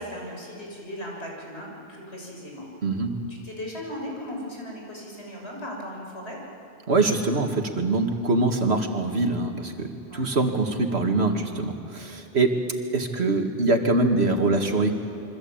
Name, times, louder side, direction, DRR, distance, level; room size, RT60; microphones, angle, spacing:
voice 1, 0.0-2.7 3.3-6.4 10.1-10.3, equal, 90° left, -1 dB, 6.7 m, -37 dB
voice 2, 2.8-3.1 6.9-12.6 12.9-14.9, right 2 dB, 80° right, 4 dB, 2.3 m, -23 dB
27.5 x 24.0 x 8.9 m, 2.5 s
omnidirectional pair, 1.1 m